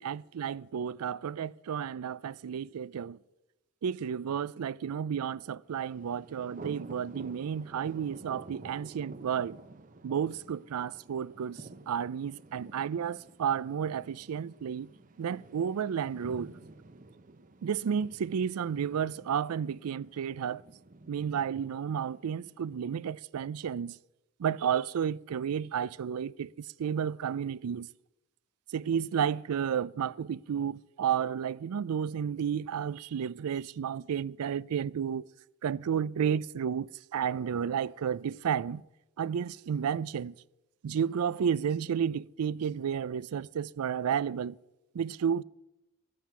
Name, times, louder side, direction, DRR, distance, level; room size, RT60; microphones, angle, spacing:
voice 1, 0.0-3.2 3.8-9.6 10.0-14.9 15.2-16.5 17.6-20.6 21.1-24.0 24.4-27.9 28.7-35.3 35.6-38.8 39.2-40.3 40.8-44.6 44.9-45.4, right 8 dB, 85° right, 0.4 m, -32 dB
Thunder, 5.7-22.7, right 2 dB, 35° right, 0.7 m, -50 dB
13.0 x 9.3 x 7.0 m
head